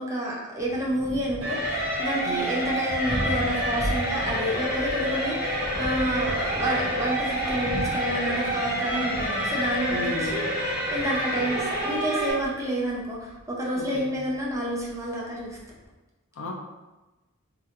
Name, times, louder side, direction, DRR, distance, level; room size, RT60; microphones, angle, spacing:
voice 1, 0.0-10.5 10.9-15.6, equal, 15° right, -4 dB, 0.6 m, -29 dB
Thunder, 0.6-15.9, equal, 10° left, 0.9 m, -38 dB
sound 1, 1.4-12.3, equal, 50° right, 1.1 m, -28 dB
voice 2, 9.9-10.5 13.8-14.2 16.3-16.5, equal, 60° left, 1 dB, 0.5 m, -34 dB
3.1 x 2.9 x 2.5 m, 1.1 s
head